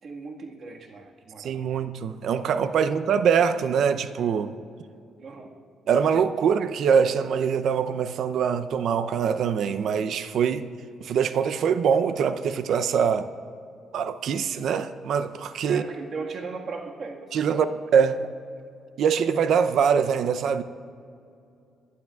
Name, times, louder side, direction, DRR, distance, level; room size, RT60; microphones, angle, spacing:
voice 1, 0.0-1.7 2.8-2.9 5.2-5.5 15.6-17.8, right 4 dB, 55° right, 1.6 m, -38 dB
voice 2, 1.4-4.5 5.9-10.7 11.0-13.3 13.9-15.8 17.3-17.7 17.9-18.3 19.0-20.6, right 7 dB, 70° right, 0.6 m, -23 dB
25.0 x 11.5 x 2.4 m
cardioid pair, 90°, 0 cm